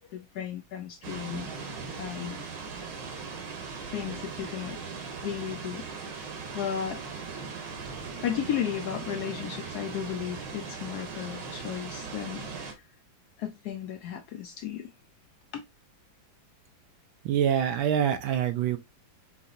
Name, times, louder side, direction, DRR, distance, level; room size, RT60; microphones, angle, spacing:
voice 1, 0.1-2.4 3.9-4.8 5.2-5.9 6.5-7.0 8.2-12.7 13.4-14.9 15.5-15.6, left 9 dB, 75° left, 0.9 m, -34 dB
sound 1, 1.0-12.7, right 5 dB, 65° right, 1.7 m, -39 dB
voice 2, 17.2-18.8, right 9 dB, 90° right, 1.6 m, -25 dB
5.7 x 2.8 x 2.5 m
omnidirectional pair, 2.1 m